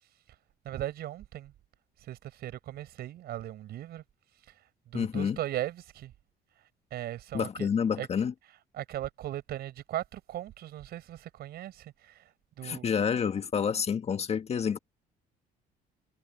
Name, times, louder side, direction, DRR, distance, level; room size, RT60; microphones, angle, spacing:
voice 1, 0.6-1.5 2.1-4.0 4.9-6.1 6.9-7.7 8.0-8.1 8.7-12.2 12.6-12.9, right 13 dB, 70° right, 6.3 m, -38 dB
voice 2, 4.9-5.4 7.3-8.3 12.6-14.8, left 7 dB, 40° left, 1.6 m, -29 dB
cardioid pair, 110°, 17 cm